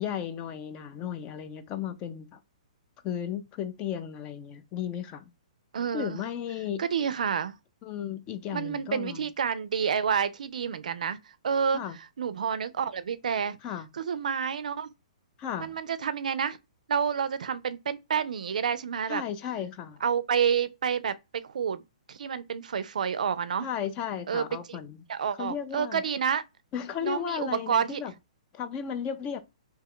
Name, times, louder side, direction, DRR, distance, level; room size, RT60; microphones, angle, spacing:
voice 1, 0.0-2.4 3.0-5.3 5.9-6.8 7.8-9.2 11.7-12.0 13.6-13.9 15.4-15.8 19.1-20.0 23.6-25.0 25.4-26.0 26.7-28.1 28.5-29.4, left 9 dB, 25° left, 0.4 m, -34 dB
voice 2, 5.7-6.2 6.8-7.5 8.5-11.2 11.4-11.8 12.2-13.6 13.9-14.9 15.6-16.6 16.9-19.2 20.0-21.8 22.1-23.7 24.3-24.8 25.1-26.4 27.0-28.0, right 7 dB, 80° right, 0.4 m, -29 dB
2.8 x 2.2 x 3.6 m
hypercardioid pair, 150°, 4 cm